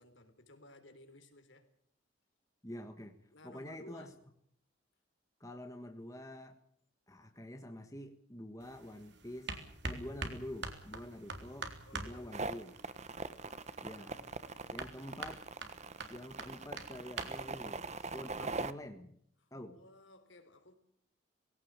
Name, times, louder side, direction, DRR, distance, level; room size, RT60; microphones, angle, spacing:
voice 1, 0.0-1.7 3.3-4.2 11.9-12.8 14.3-14.9 19.4-20.8, left 2 dB, 65° left, 8 dB, 3.8 m, -58 dB
voice 2, 2.6-3.2 3.4-4.1 5.4-6.6 7.1-9.6 9.8-12.7 13.8-14.3 14.7-15.4 16.1-19.2 19.5-19.8, left 1 dB, 15° left, 6 dB, 1.5 m, -47 dB
sound 1, 8.6-18.4, right 3 dB, 55° right, 3.6 m, -46 dB
sound 2, 12.3-18.7, right 3 dB, 35° right, 1.1 m, -41 dB
21.0 x 17.5 x 8.9 m, 0.68 s
head